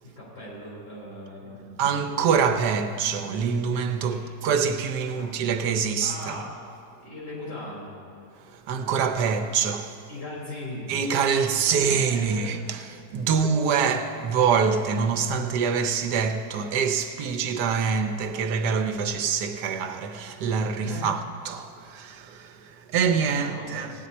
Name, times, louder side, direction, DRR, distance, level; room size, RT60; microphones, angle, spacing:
voice 1, 0.0-1.9 4.1-4.2 5.1-5.3 6.0-6.5 7.0-8.0 10.1-10.9 12.1-12.6 13.3-13.4 20.8-21.1 23.3-23.9, left 1 dB, 75° left, 4.7 m, -38 dB
voice 2, 1.8-6.4 8.4-10.0 10.9-12.8 13.1-23.9, right 6 dB, 80° right, 1.4 m, -25 dB
17.0 x 9.8 x 4.2 m
omnidirectional pair, 1.8 m